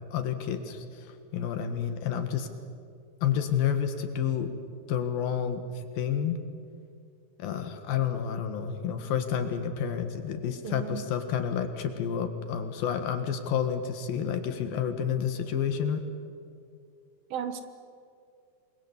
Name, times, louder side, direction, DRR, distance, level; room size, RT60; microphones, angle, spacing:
voice 1, 0.1-1.1 1.3-2.5 3.2-4.5 4.9-5.6 6.0-6.4 7.4-16.0, left 8 dB, 65° left, 8 dB, 3.2 m, -29 dB
voice 2, 10.6-11.0 17.3-17.6, right 9 dB, 70° right, 9 dB, 2.8 m, -34 dB
27.5 x 22.5 x 8.1 m, 2.4 s
omnidirectional pair, 4.7 m